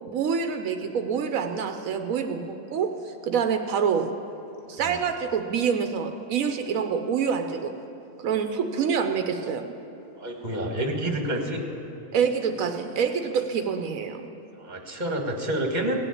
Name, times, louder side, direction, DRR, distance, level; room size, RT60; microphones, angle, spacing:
voice 1, 0.0-4.1 4.7-7.8 8.2-9.7 12.1-14.3, right 6 dB, 85° right, 6 dB, 1.2 m, -26 dB
voice 2, 10.2-11.6 14.5-16.0, right 1 dB, 35° right, 2 dB, 1.6 m, -28 dB
17.0 x 7.1 x 8.6 m, 3.0 s
omnidirectional pair, 1.4 m